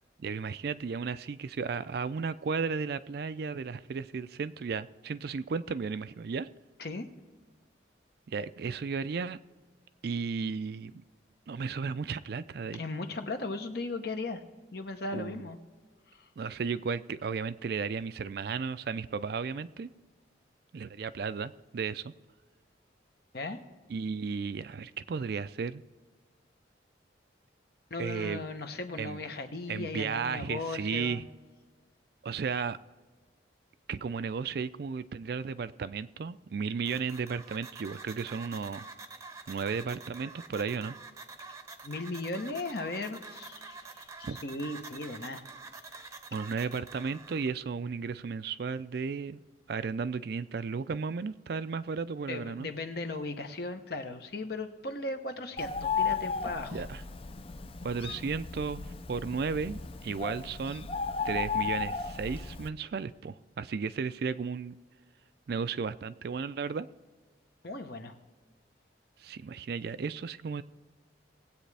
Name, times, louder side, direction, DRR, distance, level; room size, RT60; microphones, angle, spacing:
voice 1, 0.2-6.5 8.3-9.4 10.0-11.0 11.5-12.8 15.1-15.4 16.4-19.9 20.7-22.1 23.9-25.8 28.0-28.4 29.0-29.2 29.7-31.2 32.2-32.8 33.9-38.9 39.5-41.0 44.2-44.4 46.3-49.4 49.7-52.7 56.7-57.0 57.8-60.9 61.2-64.8 65.5-66.9 69.2-70.6, right 5 dB, 55° right, 14 dB, 0.4 m, -34 dB
voice 2, 12.7-14.4 14.7-15.6 16.1-16.3 23.3-23.6 27.9-31.2 41.8-45.4 52.3-56.8 67.6-68.1, left 2 dB, 55° left, 7 dB, 0.9 m, -37 dB
sound 1, 36.8-47.5, right 4 dB, 15° right, 0.7 m, -47 dB
Bird, 55.6-62.7, left 5 dB, 30° left, 0.4 m, -35 dB
19.0 x 8.3 x 3.4 m, 1.4 s
head